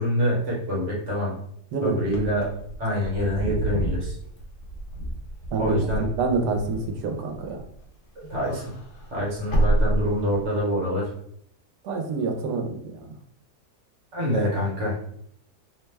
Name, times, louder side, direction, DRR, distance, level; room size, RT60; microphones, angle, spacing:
voice 1, 0.0-1.3 1.8-2.5 2.8-4.1 5.6-6.1 8.2-8.7 9.1-11.1 14.1-14.9, equal, 50° right, -4 dB, 1.2 m, -25 dB
Wind / Car, 2.1-7.8 8.2-10.6, right 1 dB, 60° left, 0.9 m, -29 dB
voice 2, 5.5-7.6 11.8-13.1, right 3 dB, 85° right, 3 dB, 1.2 m, -27 dB
2.9 x 2.1 x 3.2 m, 0.68 s
omnidirectional pair, 1.7 m